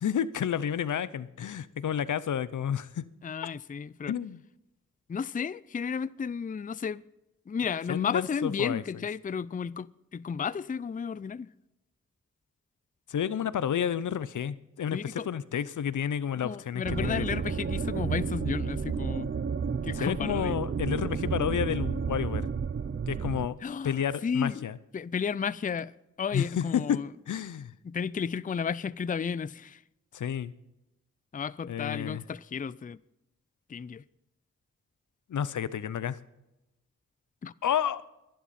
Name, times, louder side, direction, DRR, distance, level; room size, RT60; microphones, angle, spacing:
voice 1, 0.0-3.0 4.1-4.4 7.9-8.8 13.1-17.4 20.0-22.5 23.1-23.6 23.8-24.7 26.3-27.0 27.3-27.7 30.1-30.5 31.7-32.2 35.3-36.2 37.6-38.0, left 9 dB, 80° left, 0.7 m, -30 dB
voice 2, 3.2-4.1 5.1-7.0 7.5-11.5 14.9-15.3 16.4-19.3 19.8-20.6 23.6-24.7 24.9-27.1 27.8-29.8 31.3-33.0 33.7-34.0 37.4-37.5, left 6 dB, 25° left, 0.4 m, -33 dB
sound 1, 16.8-23.5, right 6 dB, 40° right, 0.7 m, -31 dB
22.0 x 10.5 x 4.2 m
cardioid pair, 45°, 30 cm